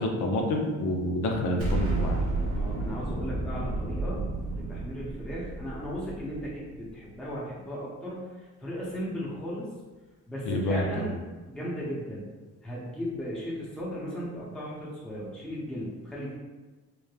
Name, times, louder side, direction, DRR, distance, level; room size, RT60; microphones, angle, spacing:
voice 1, 0.0-2.3 10.5-10.8, left 1 dB, 80° left, 1 dB, 0.6 m, -28 dB
Explosion, 1.6-6.8, right 2 dB, 50° right, 0.7 m, -31 dB
voice 2, 2.5-4.3 4.5-9.7 10.3-11.2 11.5-12.2 12.6-16.4, equal, 5° left, -7 dB, 0.7 m, -36 dB
3.0 x 2.1 x 2.3 m, 1.2 s
cardioid pair, 90°, 30 cm